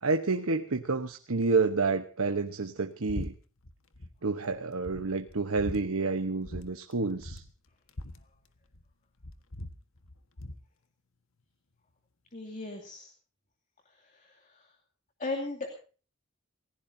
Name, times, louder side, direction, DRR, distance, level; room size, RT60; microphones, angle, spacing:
voice 1, 0.0-3.3 4.2-7.4, right 3 dB, 80° right, 6 dB, 1.1 m, -29 dB
sound 1, 3.1-3.3 3.6-4.1 4.5-4.6 4.9-5.8 6.4-6.7 6.9-7.0 7.2-8.9 9.2-10.6, left 1 dB, 65° left, 1.5 m, -40 dB
voice 2, 12.3-13.1 14.0-14.7 15.2-15.7, left 2 dB, 35° left, 4 dB, 2.6 m, -37 dB
29.0 x 16.0 x 2.8 m, 0.40 s
head